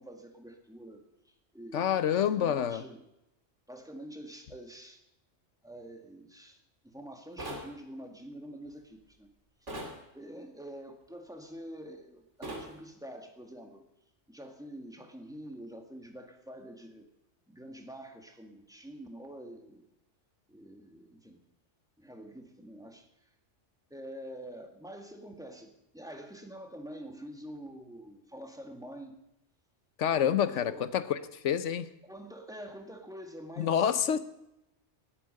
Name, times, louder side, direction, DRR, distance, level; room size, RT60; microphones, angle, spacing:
voice 1, 0.0-3.0 3.7-5.0 5.6-9.3 9.6-9.7 10.1-13.8 14.3-17.1 17.5-19.9 20.5-21.4 22.0-23.3 23.9-29.2 30.1-30.9 32.0-34.0, right 1 dB, 5° right, 1.7 m, -46 dB
voice 2, 1.7-2.8 30.0-31.2 31.4-31.9 33.6-34.2, left 9 dB, 85° left, 1.2 m, -27 dB
sound 1, 7.4-7.7 9.7-10.0 12.4-12.7, right 1 dB, 85° right, 3.5 m, -39 dB
18.0 x 8.5 x 6.5 m
omnidirectional pair, 1.2 m